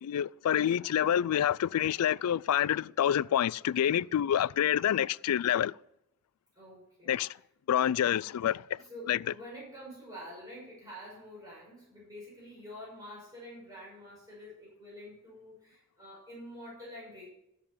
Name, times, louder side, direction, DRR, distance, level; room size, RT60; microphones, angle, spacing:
voice 1, 0.0-5.8 7.1-7.4 7.7-8.8 9.1-9.2, left 10 dB, 85° left, 0.3 m, -27 dB
voice 2, 6.6-7.1 8.7-17.3, equal, 15° right, 5.8 m, -47 dB
13.0 x 6.8 x 7.1 m
head